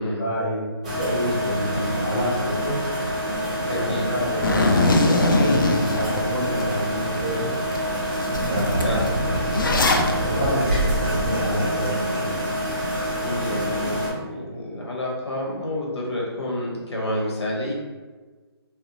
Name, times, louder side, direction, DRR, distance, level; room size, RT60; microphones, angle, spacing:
voice 1, 0.0-2.8 3.6-7.5 8.5-9.0 10.2-12.4, equal, 20° left, -14 dB, 1.1 m, -28 dB
sound 1, 0.8-14.1, equal, 15° right, 0.4 m, -27 dB
voice 2, 1.7-2.0 3.7-4.1 8.2-9.5 13.2-17.7, left 1 dB, 90° left, -3 dB, 1.0 m, -30 dB
Zipper (clothing), 4.4-6.7 7.1-7.2 7.7-10.1, left 2 dB, 55° left, 0.4 m, -22 dB
sound 2, 8.3-13.1, right 1 dB, 65° right, 0.7 m, -28 dB
2.6 x 2.0 x 2.7 m, 1.3 s
hypercardioid pair, 175°, 14 cm